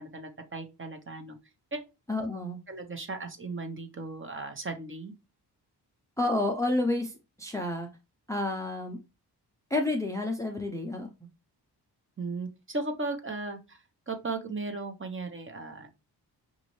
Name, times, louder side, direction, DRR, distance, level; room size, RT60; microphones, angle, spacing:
voice 1, 0.0-1.4 1.7-1.8 2.7-5.1 12.2-15.9, right 3 dB, 30° right, 5 dB, 1.0 m, -36 dB
voice 2, 2.1-2.6 6.2-7.1 7.4-7.9 8.3-9.0 9.7-11.1, left 2 dB, 10° left, 3 dB, 0.6 m, -29 dB
5.2 x 2.6 x 3.1 m, 0.27 s
cardioid pair, 85°, 41 cm